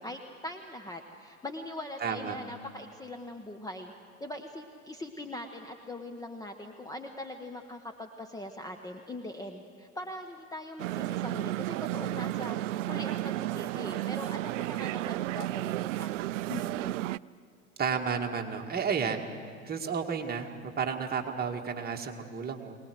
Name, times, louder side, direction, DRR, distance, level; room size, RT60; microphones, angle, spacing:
voice 1, 0.0-3.9 4.2-16.1 16.5-17.0, left 1 dB, 10° left, 4 dB, 1.1 m, -41 dB
voice 2, 2.0-2.4 17.8-19.2 19.6-22.8, right 6 dB, 20° right, 2 dB, 2.1 m, -32 dB
sound 1, 10.8-17.2, right 16 dB, 60° right, 0.5 m, -33 dB
23.5 x 19.0 x 7.9 m, 2.3 s
figure-of-eight pair, 85°, 43 cm